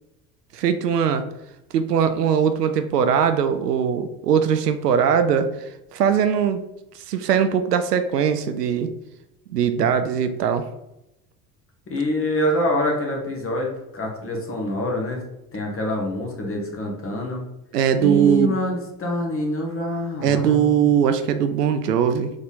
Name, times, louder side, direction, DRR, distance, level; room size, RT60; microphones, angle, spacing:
voice 1, 0.5-1.2 1.7-6.6 7.1-8.9 9.5-10.6 17.7-18.5 20.2-22.3, right 8 dB, 85° right, 9 dB, 0.5 m, -20 dB
voice 2, 11.9-15.2 15.5-17.4 18.0-20.9, left 1 dB, 30° left, 0 dB, 1.5 m, -26 dB
3.9 x 3.5 x 3.7 m, 0.88 s
figure-of-eight pair, 65°, 46 cm